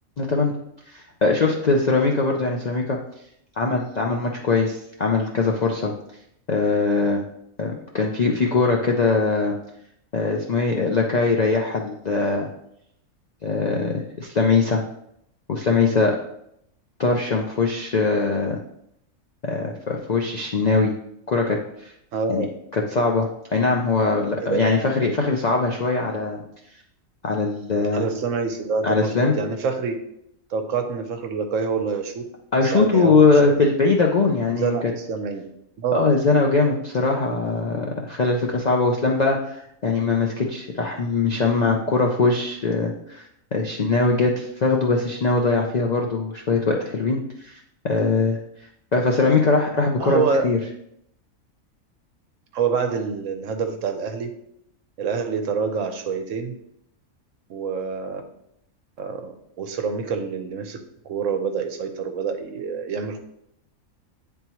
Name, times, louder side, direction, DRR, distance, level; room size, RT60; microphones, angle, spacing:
voice 1, 0.2-0.5 0.9-3.0 3.6-5.9 6.5-7.2 7.6-9.6 10.1-12.5 13.4-14.8 15.5-16.2 17.0-18.6 19.4-20.9 21.3-21.9 22.3-22.4 22.7-26.4 27.2-28.0 28.8-29.3 32.5-34.9 35.9-43.3 43.5-47.6 47.8-48.4 48.9-50.6, left 3 dB, 60° left, 0 dB, 0.4 m, -21 dB
voice 2, 22.1-22.5 24.4-24.6 27.9-30.0 30.5-32.2 32.6-33.6 34.4-35.4 35.8-36.1 50.0-50.5 52.5-54.3 55.0-56.6 57.5-58.2 59.0-63.2, right 5 dB, 70° right, 6 dB, 1.0 m, -26 dB
9.2 x 3.6 x 2.9 m, 0.75 s
omnidirectional pair, 1.4 m